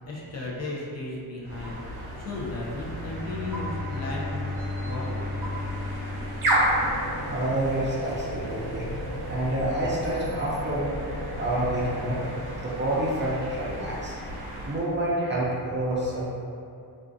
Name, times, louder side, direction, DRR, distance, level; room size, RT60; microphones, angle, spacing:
voice 1, 0.0-5.3, left 2 dB, 40° left, -5 dB, 0.5 m, -35 dB
sound 1, 1.4-14.9, right 1 dB, 65° right, 0.8 m, -32 dB
Bowed string instrument, 3.0-7.7, left 3 dB, 85° left, 1.3 m, -35 dB
voice 2, 7.3-8.9 9.3-10.9 11.4-12.2 12.5-14.1 14.7-16.3, right 1 dB, 30° right, -6 dB, 0.4 m, -28 dB
2.4 x 2.3 x 2.5 m, 2.4 s
cardioid pair, 115°, 39 cm